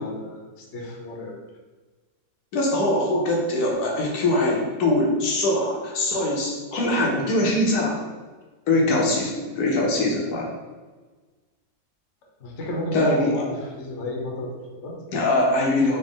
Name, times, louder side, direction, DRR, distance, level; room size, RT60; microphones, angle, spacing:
voice 1, 0.0-1.3 8.7-8.9 12.4-14.9, left 1 dB, 50° left, -1 dB, 1.0 m, -32 dB
voice 2, 2.5-8.0 8.7-10.5 12.9-13.3 15.1-16.0, left 1 dB, 75° left, -1 dB, 1.3 m, -22 dB
4.0 x 3.0 x 3.6 m, 1.3 s
omnidirectional pair, 1.7 m